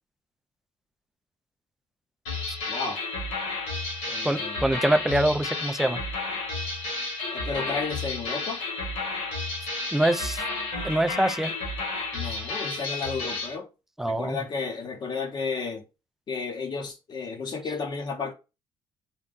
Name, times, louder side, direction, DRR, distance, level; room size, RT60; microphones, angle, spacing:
sound 1, 2.3-13.5, left 3 dB, 85° left, 2.0 m, -32 dB
voice 1, 2.7-3.0 4.1-4.8 7.3-8.6 12.1-13.7 14.1-15.8 16.3-18.3, left 4 dB, 45° left, 0.8 m, -32 dB
voice 2, 4.2-6.0 9.9-10.4 10.8-11.5 14.0-14.4, right 1 dB, 5° right, 0.4 m, -24 dB
3.7 x 2.3 x 3.8 m
supercardioid pair, 75°, 10 cm